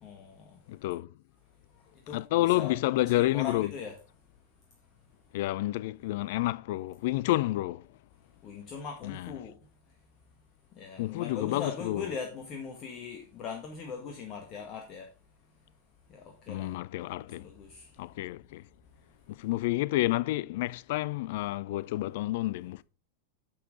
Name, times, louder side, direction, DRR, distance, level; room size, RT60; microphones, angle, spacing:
voice 1, 0.0-0.5 2.1-4.0 8.4-9.5 10.8-15.1 16.1-16.7 17.4-17.9, left 6 dB, 35° left, 1.7 m, -40 dB
voice 2, 0.7-1.1 2.1-3.7 5.3-7.8 9.0-9.3 11.0-12.0 16.5-17.5 18.0-18.6 19.3-22.8, left 17 dB, 50° left, 0.4 m, -29 dB
10.0 x 7.3 x 3.8 m
figure-of-eight pair, 90°, 0 cm